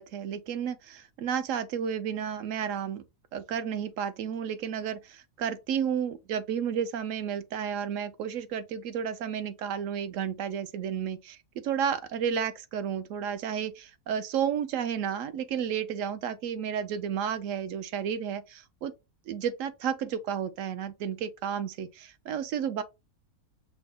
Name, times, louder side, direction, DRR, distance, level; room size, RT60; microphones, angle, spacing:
voice 1, 0.0-3.0 3.3-18.9 19.3-22.8, right 8 dB, 70° right, 0.8 m, -32 dB
6.0 x 2.0 x 3.7 m
omnidirectional pair, 1.7 m